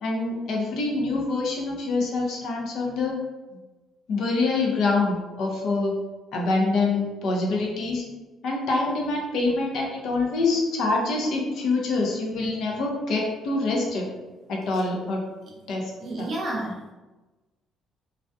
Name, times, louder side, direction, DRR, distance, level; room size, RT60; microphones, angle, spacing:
voice 1, 0.0-3.2 4.1-5.9 6.3-8.0 8.4-14.1 14.5-15.2 15.7-15.9 16.2-16.3, left 3 dB, 65° left, -1 dB, 0.6 m, -25 dB
voice 2, 16.0-16.9, right 1 dB, 40° right, -2 dB, 0.6 m, -31 dB
2.3 x 2.1 x 2.6 m, 1.1 s
cardioid pair, 140°, 0 cm